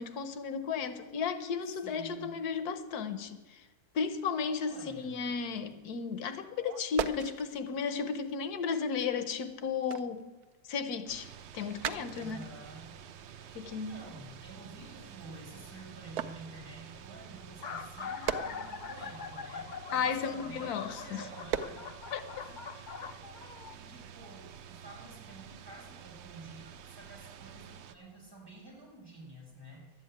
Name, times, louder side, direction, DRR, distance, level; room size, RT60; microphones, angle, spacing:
voice 1, 0.0-3.6 3.9-10.3 10.7-11.3 11.5-12.4 13.5-14.1 19.9-21.3 22.1-22.2, left 6 dB, 85° left, 1.4 m, -34 dB
voice 2, 1.6-2.3 4.6-5.2 12.2-13.0 13.2-21.9 22.4-30.0, right 2 dB, 15° right, 5.6 m, -51 dB
sound 1, 5.4-5.8 6.2-9.3 9.7-15.5 16.1-20.8 21.3-22.0 22.4-22.6, right 9 dB, 85° right, 1.2 m, -41 dB
sound 2, 11.1-28.0, right 9 dB, 60° right, 0.8 m, -50 dB
sound 3, 15.5-15.8 16.7-16.8 16.9-17.0 17.4-23.7, left 6 dB, 60° left, 0.4 m, -43 dB
12.0 x 9.4 x 8.6 m
omnidirectional pair, 1.6 m